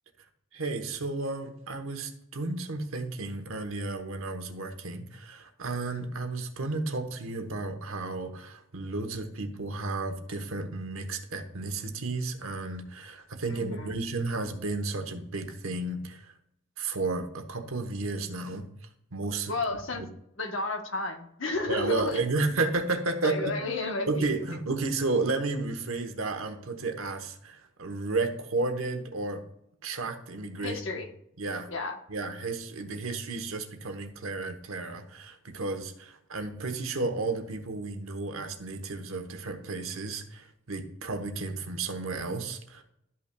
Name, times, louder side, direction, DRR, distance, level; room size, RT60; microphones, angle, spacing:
voice 1, 0.5-16.3 16.8-18.7 19.1-19.5 21.7-23.6 24.1-29.4 29.8-30.8 31.4-31.7 32.1-42.8, right 3 dB, 85° right, 7 dB, 1.0 m, -32 dB
voice 2, 13.5-13.9 19.5-20.1 20.4-22.3 23.2-24.3 30.6-31.1 31.7-32.0, left 3 dB, 70° left, 5 dB, 1.0 m, -32 dB
12.0 x 5.7 x 2.2 m, 0.75 s
head